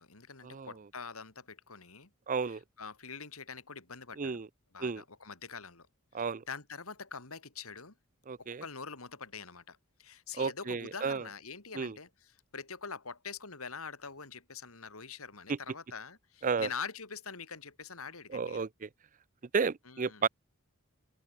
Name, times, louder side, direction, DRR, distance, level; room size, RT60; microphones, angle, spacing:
voice 1, 0.0-2.1 2.5-4.4 4.7-5.9 6.1-7.9 8.4-18.6 19.9-20.2, left 5 dB, 85° left, 3.6 m, -44 dB
voice 2, 2.3-2.6 4.2-4.5 4.8-5.0 6.1-6.4 8.3-8.6 10.4-11.2 11.7-12.0 15.5-15.6 16.4-16.7 18.3-18.9 19.5-20.3, right 5 dB, 40° right, 0.5 m, -32 dB
head